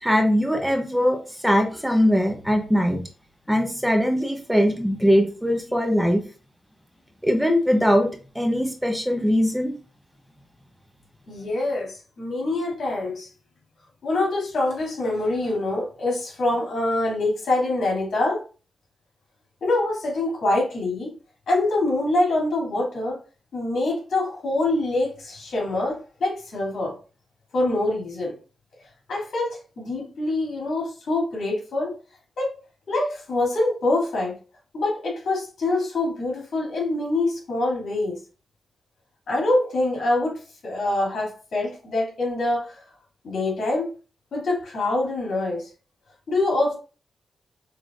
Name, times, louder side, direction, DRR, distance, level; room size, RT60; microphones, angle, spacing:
voice 1, 0.0-3.0 3.5-6.3 7.2-9.7, equal, 5° right, 0.8 m, -21 dB
voice 2, 11.3-13.3 14.0-18.4 19.6-21.1 21.5-23.2 23.5-27.0 27.5-28.3 29.1-31.9 32.4-32.5 32.9-34.4 34.7-38.2 39.3-40.3 40.6-42.8 43.2-43.9 44.3-45.7 46.3-46.7, left 2 dB, 75° left, 2.5 m, -25 dB
6.3 x 3.1 x 2.4 m
cardioid pair, 80°, 0 cm